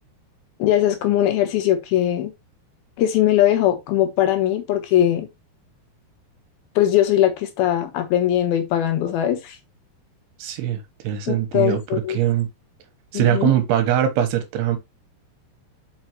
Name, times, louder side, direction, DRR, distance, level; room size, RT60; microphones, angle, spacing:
voice 1, 0.6-2.3 3.0-5.3 6.8-9.6 11.3-12.2 13.1-13.5, left 12 dB, 75° left, 2.9 m, -20 dB
voice 2, 10.4-12.5 13.1-14.8, right 11 dB, 85° right, 3.1 m, -22 dB
6.0 x 5.7 x 3.0 m
omnidirectional pair, 4.6 m